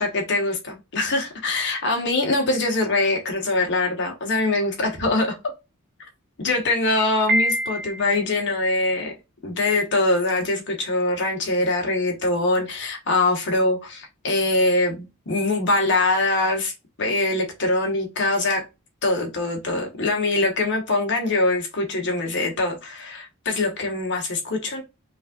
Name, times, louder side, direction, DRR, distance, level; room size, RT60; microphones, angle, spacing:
voice 1, 0.0-5.4 6.4-9.1 9.4-16.7 17.0-18.6 19.0-24.8, left 2 dB, 55° left, 1.2 m, -23 dB
Piano, 7.3-8.3, right 1 dB, 50° right, 1.0 m, -24 dB
5.1 x 2.6 x 2.3 m
head